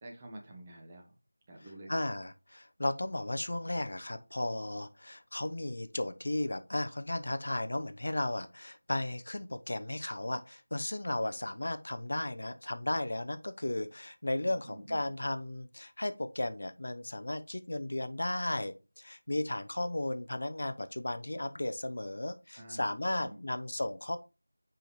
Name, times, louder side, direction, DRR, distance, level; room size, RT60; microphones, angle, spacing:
voice 1, 0.0-1.1 1.5-1.9 14.4-15.2 22.6-23.4, right 1 dB, 20° right, 1 dB, 1.1 m, -49 dB
voice 2, 1.9-24.2, left 1 dB, 55° left, 9 dB, 0.8 m, -35 dB
9.0 x 3.9 x 3.1 m, 0.30 s
figure-of-eight pair, 170°, 0 cm